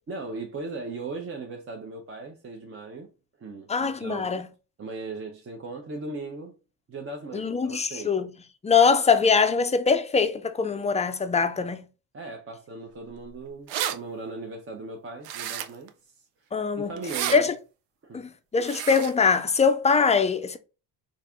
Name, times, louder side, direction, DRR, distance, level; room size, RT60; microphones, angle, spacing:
voice 1, 0.1-3.1 3.4-4.3 4.8-6.6 6.9-8.2 12.1-16.2 16.8-17.5 18.0-18.2, right 3 dB, 30° right, 0.6 m, -38 dB
voice 2, 3.7-4.5 7.3-8.3 8.6-11.9 16.5-16.9 17.3-17.5 18.1-20.6, left 5 dB, 15° left, 0.3 m, -22 dB
sound 1, 13.2-13.3 13.5-14.0 15.2-15.9 17.0-17.4 18.6-19.1, right 10 dB, 85° right, 0.6 m, -31 dB
3.2 x 2.5 x 3.5 m
supercardioid pair, 80°, 45 cm